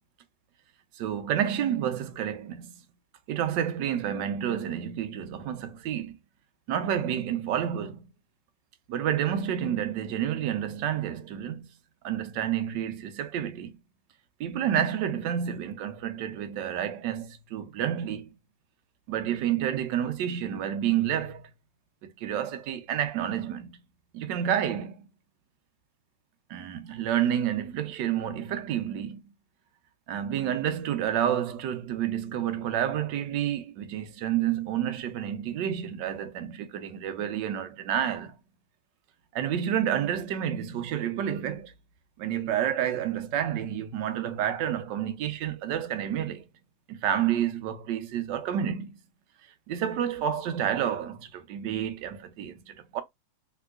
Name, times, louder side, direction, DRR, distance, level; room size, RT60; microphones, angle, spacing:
voice 1, 1.0-2.7 3.3-6.2 6.7-8.0 8.9-11.7 12.0-13.7 14.4-18.3 19.1-21.5 22.0-23.8 24.1-25.1 26.5-29.3 30.1-38.4 39.3-41.7 42.2-46.4 46.9-49.0 49.7-53.0, right 10 dB, 75° right, 1.3 m, -29 dB
3.4 x 2.9 x 2.3 m
omnidirectional pair, 2.0 m